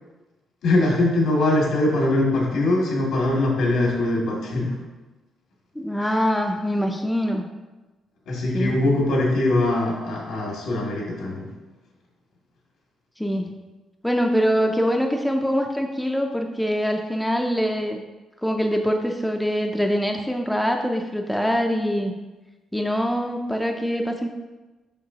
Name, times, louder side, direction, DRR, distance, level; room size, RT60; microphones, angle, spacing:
voice 1, 0.6-4.8 6.0-6.2 8.3-11.5, left 2 dB, 80° left, -3 dB, 2.1 m, -22 dB
voice 2, 5.8-7.4 8.5-8.8 13.2-13.5 14.0-18.0 18.4-22.1 22.7-24.3, equal, 5° left, 3 dB, 0.4 m, -24 dB
6.7 x 5.8 x 2.8 m, 1.2 s
cardioid pair, 135°, 0 cm